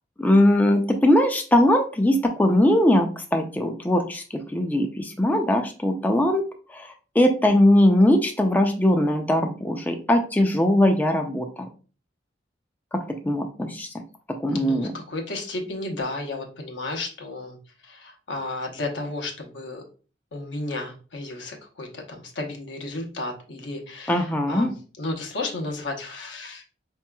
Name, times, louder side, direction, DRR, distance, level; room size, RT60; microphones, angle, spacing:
voice 1, 0.2-6.4 6.7-11.7 12.9-13.9 14.4-14.9 24.1-24.7, left 1 dB, 10° left, 4 dB, 0.3 m, -20 dB
voice 2, 14.5-17.6 17.8-19.8 20.3-24.7 25.0-26.6, left 2 dB, 85° left, 1 dB, 1.0 m, -33 dB
4.7 x 2.9 x 2.2 m, 0.37 s
head